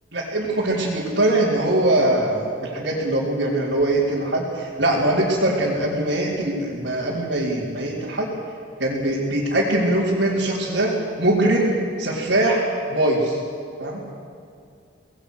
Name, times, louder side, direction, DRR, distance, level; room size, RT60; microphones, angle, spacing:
voice 1, 0.1-8.3 8.8-10.9 11.2-12.6 12.9-13.4 13.8-14.0, right 1 dB, 70° right, -8 dB, 4.1 m, -22 dB
25.5 x 19.5 x 6.6 m, 2.4 s
head